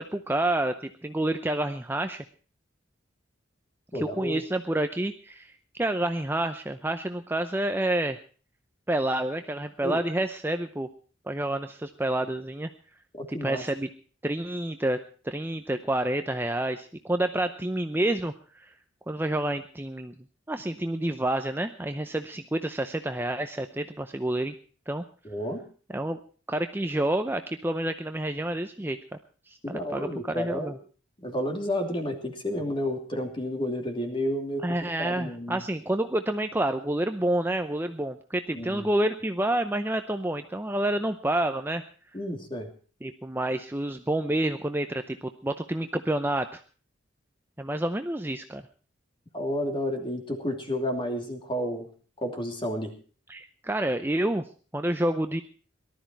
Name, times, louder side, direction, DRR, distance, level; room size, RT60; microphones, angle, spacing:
voice 1, 0.0-2.2 3.9-5.5 5.8-8.2 8.9-10.9 11.3-12.7 13.3-13.9 14.2-15.0 15.2-18.7 19.1-20.2 20.5-24.5 24.9-25.0 25.9-26.2 26.5-29.0 29.5-30.8 34.6-41.8 43.0-46.6 47.6-48.6 53.3-54.4 54.7-55.4, right 1 dB, 10° right, 8 dB, 0.6 m, -28 dB
voice 2, 3.9-4.4 9.8-10.0 13.1-13.6 25.2-25.6 29.6-30.8 31.2-35.6 38.5-38.9 42.1-42.7 49.3-51.9 52.2-52.9, equal, 25° left, 4 dB, 2.9 m, -31 dB
18.5 x 12.5 x 4.5 m, 0.40 s
head